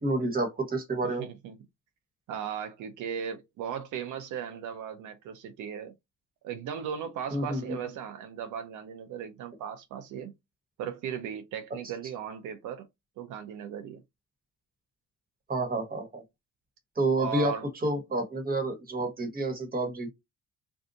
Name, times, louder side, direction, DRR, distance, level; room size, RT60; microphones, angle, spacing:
voice 1, 0.0-1.3 7.3-7.8 15.5-16.2 17.0-17.6 17.8-20.1, right 2 dB, 30° right, 1.3 m, -29 dB
voice 2, 1.2-1.6 2.3-5.9 6.4-10.3 10.8-12.9 13.2-14.0 17.2-17.7, right 8 dB, 80° right, 0.6 m, -37 dB
2.6 x 2.3 x 3.8 m
cardioid pair, 90°, 30 cm